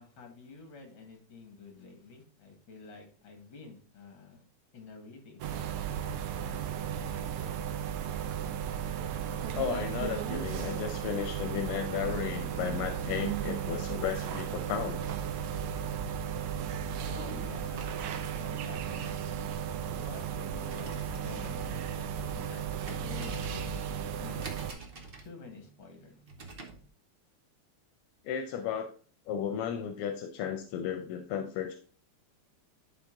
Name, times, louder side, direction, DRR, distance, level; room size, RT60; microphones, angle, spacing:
voice 1, 0.0-4.4 4.7-5.8 17.0-19.5 19.9-24.4 25.2-26.2, left 4 dB, 65° left, 3 dB, 2.6 m, -49 dB
sound 1, 5.4-24.7, right 8 dB, 85° right, 1.6 m, -35 dB
voice 2, 9.5-15.1 28.2-28.9 29.3-31.8, left 8 dB, 85° left, 6 dB, 1.6 m, -34 dB
sound 2, 20.6-26.9, right 3 dB, 35° right, 1.0 m, -48 dB
11.0 x 3.7 x 3.7 m, 0.40 s
omnidirectional pair, 2.4 m